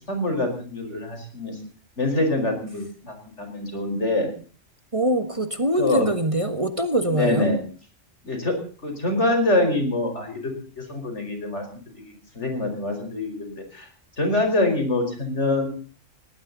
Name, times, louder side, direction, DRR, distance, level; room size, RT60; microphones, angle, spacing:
voice 1, 0.1-1.6 2.0-4.3 5.8-6.0 7.1-7.6 8.2-8.5 8.8-11.7 12.4-13.9 14.2-15.7, left 2 dB, 70° left, 5 dB, 5.3 m, -25 dB
voice 2, 4.9-7.5, right 1 dB, 25° right, 8 dB, 1.7 m, -23 dB
19.0 x 18.5 x 4.1 m, 0.40 s
omnidirectional pair, 1.2 m